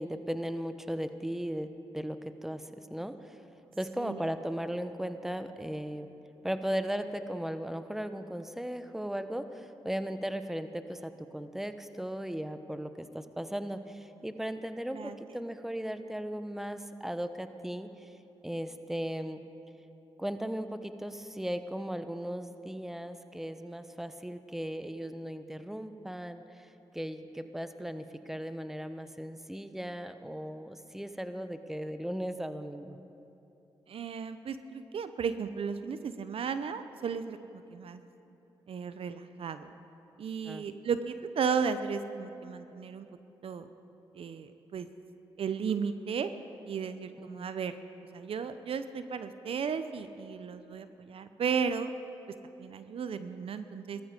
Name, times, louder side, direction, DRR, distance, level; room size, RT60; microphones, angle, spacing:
voice 1, 0.0-1.7 1.9-3.4 3.8-6.1 6.4-18.1 18.4-19.4 20.2-33.0 40.4-40.6 47.2-47.5, equal, 5° right, 10 dB, 0.9 m, -37 dB
voice 2, 33.9-38.0 38.7-39.7 40.2-43.1 43.4-43.7 44.1-44.9 45.4-46.3 46.6-47.7 48.1-51.9 52.6-54.0, right 6 dB, 65° right, 11 dB, 0.7 m, -34 dB
17.5 x 14.0 x 5.2 m, 2.9 s
supercardioid pair, 50°, 10 cm